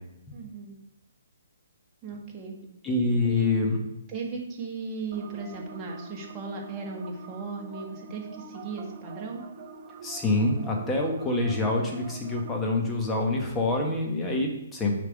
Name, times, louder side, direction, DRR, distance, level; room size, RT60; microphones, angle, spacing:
voice 1, 0.3-0.8 2.0-2.6 3.2-3.5 4.1-9.4, right 4 dB, 25° right, -2 dB, 1.5 m, -37 dB
voice 2, 2.8-3.8 10.0-14.9, left 2 dB, 15° left, 0 dB, 1.2 m, -26 dB
sound 1, 5.1-12.5, right 4 dB, 40° right, 0.6 m, -45 dB
6.5 x 3.6 x 4.9 m, 0.86 s
hypercardioid pair, 135°, 0 cm